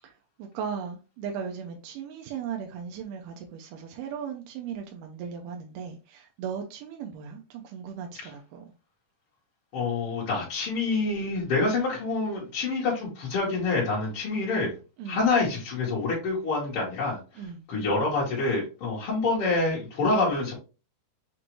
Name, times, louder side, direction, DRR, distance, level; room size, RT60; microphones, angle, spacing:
voice 1, 0.0-8.7 15.0-15.2 17.4-17.7, right 7 dB, 90° right, 2.2 m, -37 dB
voice 2, 9.7-14.7 15.1-17.2 17.7-20.5, left 3 dB, 50° left, 1.8 m, -26 dB
6.0 x 2.6 x 2.9 m
omnidirectional pair, 3.8 m